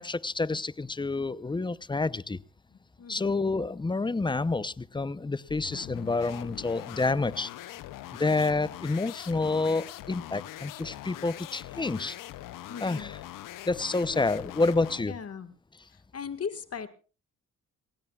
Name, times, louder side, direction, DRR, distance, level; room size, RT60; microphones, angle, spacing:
voice 1, 0.0-2.4 3.1-7.5 8.2-12.2 12.8-13.2 13.6-15.1, left 3 dB, 15° left, 17 dB, 0.7 m, -28 dB
voice 2, 2.7-3.4 12.7-13.1 14.1-14.2 15.1-15.5 15.9-16.9, left 6 dB, 50° left, 9 dB, 1.7 m, -39 dB
sound 1, 5.5-15.1, left 14 dB, 80° left, 0.7 m, -42 dB
27.0 x 16.5 x 2.4 m, 0.36 s
cardioid pair, 75°, 32 cm